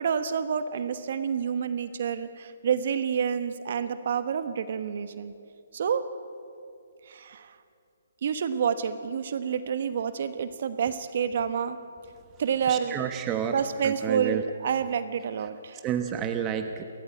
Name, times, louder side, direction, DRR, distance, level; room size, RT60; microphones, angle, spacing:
voice 1, 0.0-5.3 5.7-6.1 7.0-7.6 8.2-11.8 12.4-13.1 13.5-15.8, right 7 dB, 55° right, 11 dB, 1.2 m, -28 dB
voice 2, 12.7-13.5 13.8-14.4 15.8-16.8, right 9 dB, 20° right, 7 dB, 1.2 m, -30 dB
29.5 x 14.0 x 8.6 m, 2.5 s
hypercardioid pair, 145°, 0 cm